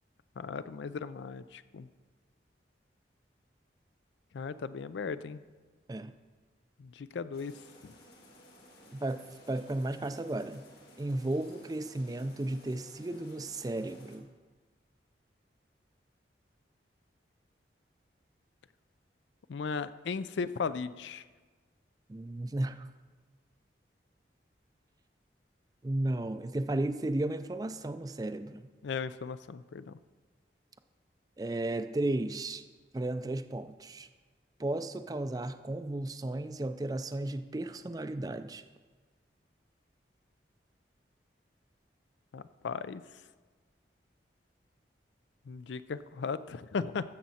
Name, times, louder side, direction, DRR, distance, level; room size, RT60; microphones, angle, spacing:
voice 1, 0.4-1.9 4.3-5.4 6.8-7.5 7.8-7.9 19.5-21.2 28.8-30.0 42.3-43.0 45.5-47.0, left 5 dB, 80° left, 14 dB, 0.4 m, -36 dB
sound 1, 7.3-14.2, equal, 60° left, 1.9 m, -56 dB
voice 2, 8.9-10.6 11.0-14.3 22.1-22.9 25.8-28.7 31.4-32.6 32.9-34.1 34.6-38.6, right 1 dB, 20° right, 11 dB, 0.4 m, -34 dB
14.0 x 7.2 x 4.2 m, 1.4 s
head